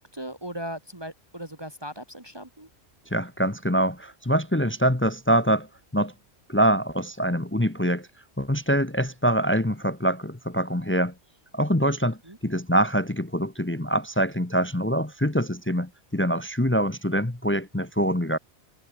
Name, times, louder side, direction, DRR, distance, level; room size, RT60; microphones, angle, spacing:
voice 1, 0.0-2.7 12.0-12.4, equal, 20° right, 2.2 m, -38 dB
voice 2, 3.1-5.7 5.9-6.1 6.5-8.1 8.4-11.1 11.5-18.4, equal, 10° left, 1.1 m, -24 dB
omnidirectional pair, 1.1 m